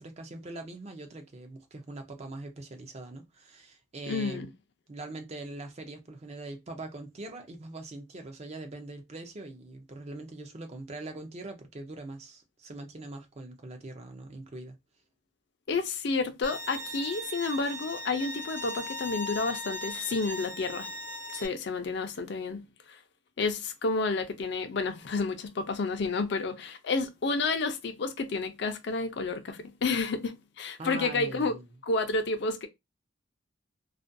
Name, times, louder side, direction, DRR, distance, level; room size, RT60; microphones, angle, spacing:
voice 1, 0.0-4.5 4.9-14.8 30.8-31.7, right 2 dB, 30° right, 0.4 m, -42 dB
voice 2, 4.1-4.5 15.7-20.9 21.3-22.6 22.9-23.0 23.4-31.5 31.8-32.7, left 3 dB, 55° left, 0.4 m, -30 dB
Bowed string instrument, 16.4-21.5, left 1 dB, 55° right, 0.9 m, -38 dB
2.4 x 2.2 x 2.5 m
head